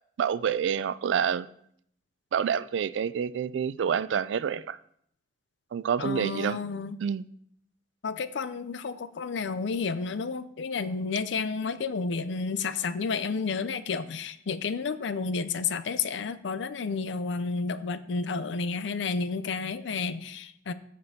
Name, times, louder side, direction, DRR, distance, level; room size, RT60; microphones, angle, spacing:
voice 1, 0.2-1.5 2.3-4.8 5.7-6.6 7.0-7.2, right 7 dB, 75° right, 0.3 m, -28 dB
voice 2, 6.0-7.0 8.0-20.7, left 4 dB, 75° left, 0.5 m, -31 dB
14.0 x 5.2 x 2.8 m
head